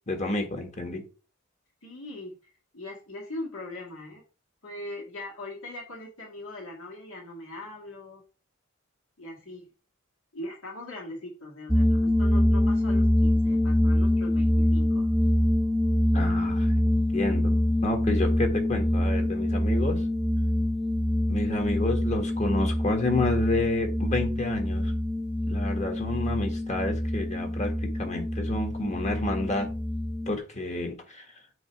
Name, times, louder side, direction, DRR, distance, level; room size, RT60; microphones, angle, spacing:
voice 1, 0.1-1.0 16.1-20.0 21.3-24.9 25.5-29.7 30.3-31.2, left 2 dB, 35° left, 4 dB, 1.4 m, -30 dB
voice 2, 1.8-4.2 4.6-8.2 9.2-9.6 10.3-15.1, left 2 dB, 85° left, -2 dB, 2.0 m, -40 dB
sound 1, 11.7-30.4, left 1 dB, ahead, 0.6 m, -25 dB
7.9 x 2.9 x 4.6 m, 0.35 s
head